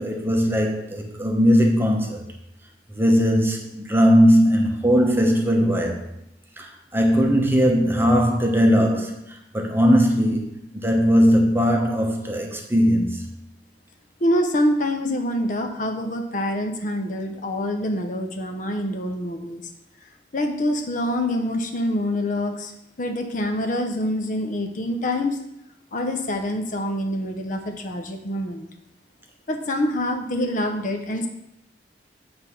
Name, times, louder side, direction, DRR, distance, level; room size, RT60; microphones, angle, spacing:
voice 1, 0.0-2.2 2.9-6.0 6.6-9.1 9.5-10.5 10.8-13.3, equal, 15° right, 0.9 m, -19 dB
voice 2, 14.2-19.6 20.3-22.7 23.0-25.4 25.9-28.6 29.5-31.3, left 1 dB, 50° left, 0.7 m, -25 dB
8.0 x 3.4 x 5.6 m
head